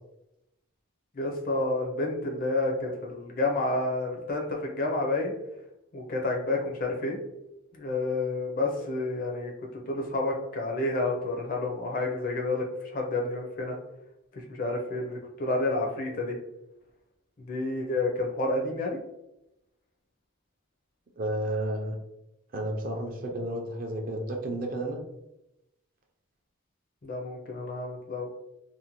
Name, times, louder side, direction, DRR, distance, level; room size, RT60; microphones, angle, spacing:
voice 1, 1.1-5.3 5.9-7.2 7.7-13.8 14.3-16.3 17.5-19.0 27.0-28.3, left 2 dB, 40° left, 1 dB, 0.4 m, -30 dB
voice 2, 21.2-22.0 22.5-25.0, right 1 dB, 40° right, 2 dB, 0.4 m, -32 dB
2.6 x 2.1 x 2.9 m, 0.88 s
head